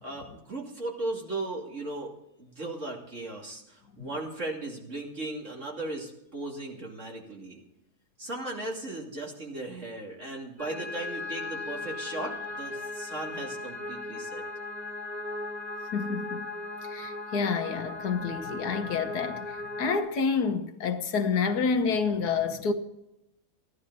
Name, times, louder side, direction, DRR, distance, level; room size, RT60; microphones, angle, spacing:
voice 1, 0.0-7.6 8.2-14.4, right 2 dB, 45° right, 3.1 m, -37 dB
sound 1, 10.6-20.0, left 2 dB, 10° right, 1.9 m, -37 dB
voice 2, 15.9-16.5 16.9-22.7, left 5 dB, 75° left, 1.6 m, -28 dB
15.5 x 11.5 x 4.1 m
omnidirectional pair, 1.7 m